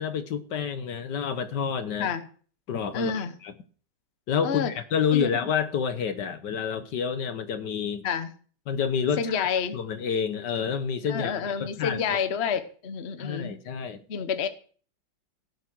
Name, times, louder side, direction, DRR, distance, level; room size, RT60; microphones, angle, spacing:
voice 1, 0.0-2.1 2.7-3.5 4.3-8.1 8.7-12.2 13.2-14.0, left 7 dB, 60° left, 1.6 m, -29 dB
voice 2, 2.9-3.3 4.4-4.7 5.1-5.4 8.0-8.3 9.2-9.8 11.1-13.5 14.1-14.5, left 7 dB, 40° left, 1.0 m, -28 dB
17.0 x 7.7 x 6.2 m
omnidirectional pair, 2.2 m